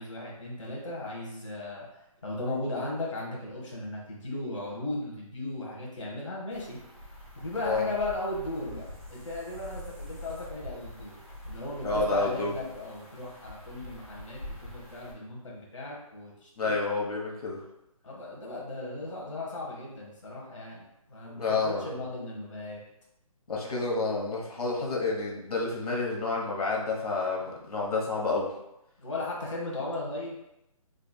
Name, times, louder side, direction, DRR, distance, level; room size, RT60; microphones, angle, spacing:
voice 1, 0.0-1.9 2.2-6.8 7.4-11.2 11.4-16.8 18.0-22.8 29.0-30.4, left 2 dB, 55° left, -4 dB, 1.0 m, -36 dB
sound 1, 6.5-15.1, left 1 dB, ahead, 0.6 m, -44 dB
voice 2, 11.8-12.5 16.6-17.6 21.2-22.0 23.5-28.5, left 3 dB, 90° left, -2 dB, 1.1 m, -29 dB
5.0 x 2.4 x 2.2 m, 0.85 s
hypercardioid pair, 175°, 19 cm